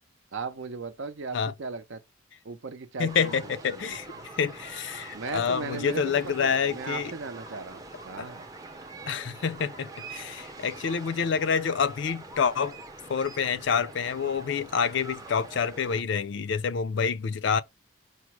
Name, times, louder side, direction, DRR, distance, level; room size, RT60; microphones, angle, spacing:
voice 1, 0.3-2.0 2.4-3.3 3.7-4.0 5.1-8.5, right 4 dB, 65° right, 0.6 m, -37 dB
voice 2, 3.0-7.1 8.2-8.3 9.1-12.8 13.1-17.6, left 6 dB, 60° left, 0.4 m, -28 dB
sound 1, 3.1-16.0, right 3 dB, 15° right, 0.5 m, -44 dB
4.9 x 2.0 x 4.5 m
head